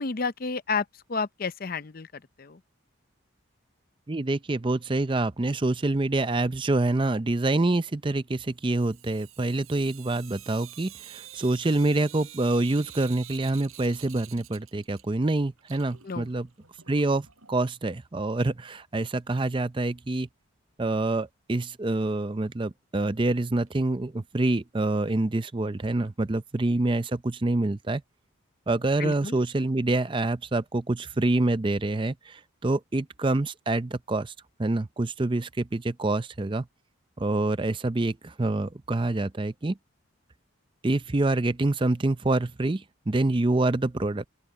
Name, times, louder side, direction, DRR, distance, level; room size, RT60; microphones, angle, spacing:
voice 1, 0.0-2.1 2.4-2.6 16.0-16.3 29.0-29.4, left 4 dB, 45° left, 0.6 m, -31 dB
voice 2, 4.1-16.5 16.9-20.3 20.8-28.0 28.7-34.3 34.6-36.7 37.2-39.8 40.8-44.2, right 2 dB, 25° right, 0.5 m, -26 dB
Sink (filling or washing) / Drip, 8.6-15.3 15.6-17.5 18.7-18.8 19.1-19.2 19.4-19.5 22.4-22.5 23.0-23.1 23.7-23.8 24.4-24.5 25.1-25.2 26.1-26.2, right 13 dB, 85° right, 6.8 m, -48 dB
open air
head